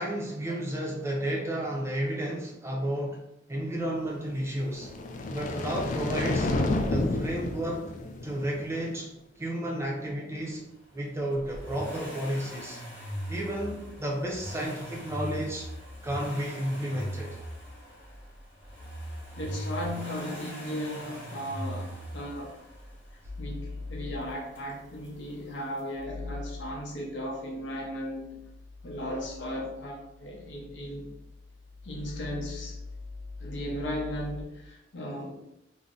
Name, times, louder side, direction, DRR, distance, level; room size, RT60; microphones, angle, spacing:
voice 1, 0.0-3.2 3.5-4.9 5.3-6.5 6.9-7.9 8.2-9.1 9.4-10.6 10.9-12.8 13.3-15.7 16.0-17.3, right 1 dB, 15° right, 0.5 m, -32 dB
sound 1, 4.6-8.9, left 2 dB, 45° left, 0.3 m, -30 dB
Accelerating revving vroom, 11.3-23.2 24.5-24.6, equal, 10° left, 1.1 m, -40 dB
voice 2, 19.4-22.6 23.4-28.4 28.8-31.1 31.8-32.8 33.4-35.4, equal, 70° left, 0.7 m, -36 dB
sound 2, 23.2-34.4, left 3 dB, 80° right, 0.7 m, -43 dB
2.5 x 2.1 x 3.7 m
head